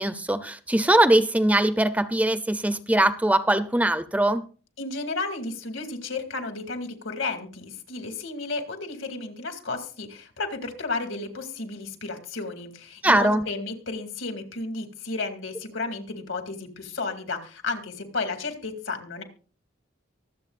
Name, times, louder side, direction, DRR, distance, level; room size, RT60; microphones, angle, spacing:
voice 1, 0.0-4.4 13.0-13.4, right 1 dB, 5° right, 0.5 m, -21 dB
voice 2, 4.8-19.2, left 3 dB, 80° left, 2.3 m, -33 dB
23.5 x 7.9 x 2.5 m
head